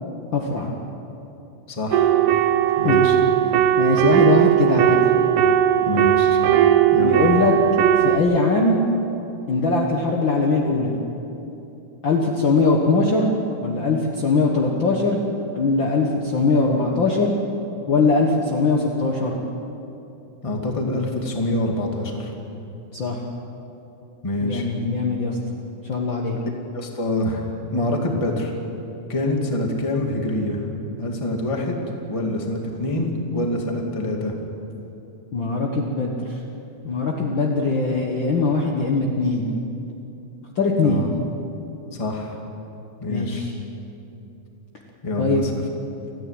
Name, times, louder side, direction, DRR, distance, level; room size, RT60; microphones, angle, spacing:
voice 1, 0.3-0.7 2.8-3.0 3.8-5.0 7.0-7.5 8.0-8.8 9.5-11.0 12.0-13.3 13.6-15.2 15.5-17.4 17.9-19.4 22.9-23.2 24.4-25.4 25.9-26.4 35.3-36.4 36.8-39.5 40.6-41.0 43.1-43.5 45.2-45.4, left 3 dB, 50° left, -1 dB, 1.7 m, -21 dB
voice 2, 1.7-2.1 2.8-3.2 5.8-6.4 6.9-7.3 20.4-22.3 24.2-24.6 26.7-28.5 29.1-30.6 31.0-31.8 32.1-34.3 40.8-41.1 41.9-42.4 43.0-43.4 45.0-45.6, left 1 dB, 10° left, 1 dB, 1.7 m, -26 dB
sound 1, 1.9-8.2, right 10 dB, 85° right, 2.5 m, -18 dB
29.5 x 10.0 x 9.7 m, 2.9 s
omnidirectional pair, 3.5 m